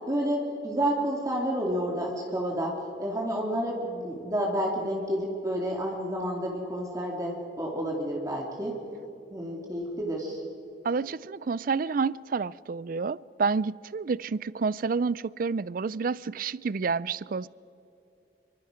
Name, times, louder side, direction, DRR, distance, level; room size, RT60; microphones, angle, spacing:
voice 1, 0.1-8.8 9.3-10.4, equal, 20° right, 2.4 m, -30 dB
voice 2, 10.8-17.5, right 5 dB, 50° right, 0.4 m, -29 dB
26.0 x 24.0 x 5.1 m
head